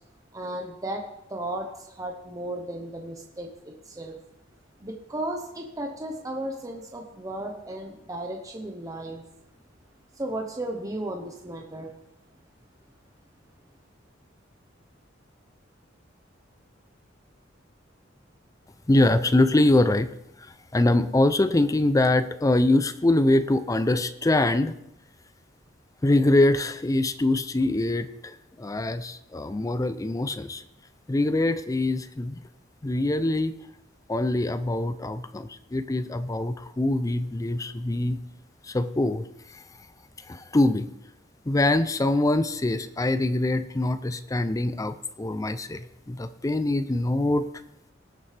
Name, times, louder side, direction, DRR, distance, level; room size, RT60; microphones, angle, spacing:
voice 1, 0.3-1.0 1.3-4.2 4.8-9.2 10.2-11.9, right 1 dB, 20° right, 1 dB, 0.9 m, -34 dB
voice 2, 18.9-20.1 20.4-24.7 26.0-30.6 31.1-32.4 32.8-33.5 34.1-38.2 38.6-39.2 39.5-39.6 40.3-40.9 41.5-47.5, left 2 dB, 20° left, 12 dB, 0.4 m, -24 dB
18.5 x 7.0 x 3.3 m, 0.82 s
head